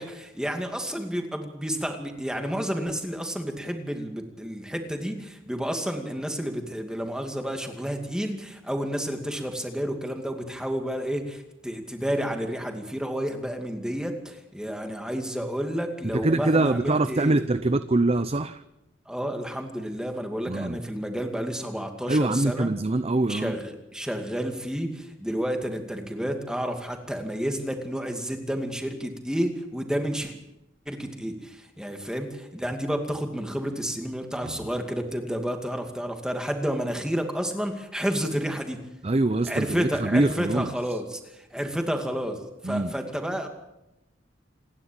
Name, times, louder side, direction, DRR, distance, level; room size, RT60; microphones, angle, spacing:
voice 1, 0.0-17.4 19.1-22.7 23.3-30.3 30.9-38.8 39.5-43.5, equal, 5° right, 4 dB, 2.4 m, -30 dB
voice 2, 16.0-18.6 20.5-20.8 22.1-23.5 34.4-34.6 39.0-40.7 42.6-42.9, right 2 dB, 30° right, 12 dB, 0.6 m, -24 dB
28.0 x 11.5 x 8.8 m, 0.92 s
head